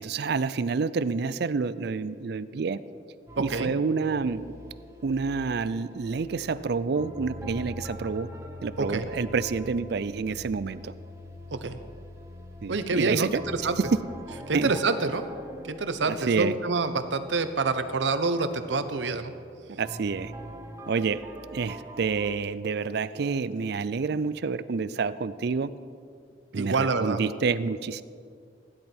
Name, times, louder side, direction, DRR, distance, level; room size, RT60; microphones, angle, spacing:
voice 1, 0.0-2.8 3.4-4.5 5.0-8.3 8.6-10.9 12.6-13.4 14.5-14.7 16.1-16.5 19.7-20.3 20.9-21.3 21.5-25.7 26.5-28.0, right 5 dB, 60° right, 16 dB, 0.4 m, -28 dB
sound 1, 3.3-22.3, equal, 15° right, 1.0 m, -44 dB
voice 2, 3.4-3.7 8.8-9.1 11.5-11.8 12.7-13.8 14.5-15.3 15.6-19.3 26.6-27.2, right 3 dB, 75° right, 10 dB, 0.8 m, -27 dB
16.0 x 10.5 x 4.4 m, 2.2 s
head